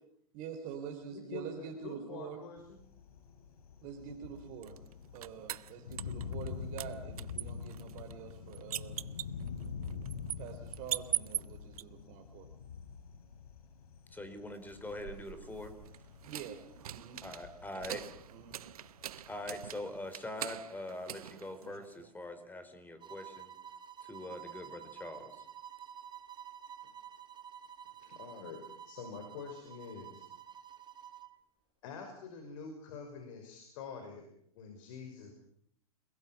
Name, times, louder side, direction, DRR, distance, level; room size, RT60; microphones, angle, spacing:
voice 1, 0.3-2.4 3.8-4.8 5.1-9.0 10.4-12.5 16.2-16.6 16.9-17.3 17.7-18.6, right 8 dB, 45° right, 4 dB, 3.7 m, -46 dB
voice 2, 1.1-2.8 26.8-26.9 28.0-28.6 28.8-30.3 31.8-34.3 34.5-35.3, left 5 dB, 60° left, 4 dB, 5.6 m, -46 dB
Thunder, 2.6-20.1, left 6 dB, 80° left, 5.3 m, -46 dB
sound 1, 4.6-6.5 6.8-11.8 14.6-22.1, right 11 dB, 75° right, 0.9 m, -42 dB
voice 3, 14.1-15.7 17.2-18.0 19.3-23.5 24.0-25.3, left 1 dB, 10° left, 9 dB, 4.4 m, -43 dB
sound 2, 23.0-31.4, right 9 dB, 25° right, 2.2 m, -50 dB
30.0 x 21.5 x 6.0 m, 0.68 s
hypercardioid pair, 110°, 19 cm